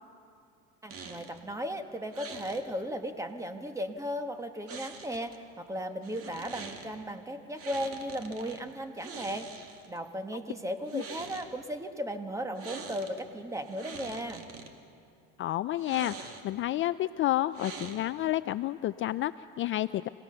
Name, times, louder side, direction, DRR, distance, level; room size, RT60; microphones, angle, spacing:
voice 1, 0.8-9.5 9.9-14.4, equal, 10° right, 7 dB, 1.5 m, -36 dB
sound 1, 0.9-1.4 2.1-2.6 4.7-5.4 6.0-6.9 7.6-8.6 9.0-10.0 10.8-11.5 12.6-13.2 13.6-14.7 15.8-16.6 17.5-18.3, right 5 dB, 50° right, 2.4 m, -44 dB
voice 2, 15.4-20.1, left 14 dB, 40° left, 14 dB, 0.4 m, -30 dB
26.5 x 17.5 x 6.8 m, 2.5 s
supercardioid pair, 110°, 30 cm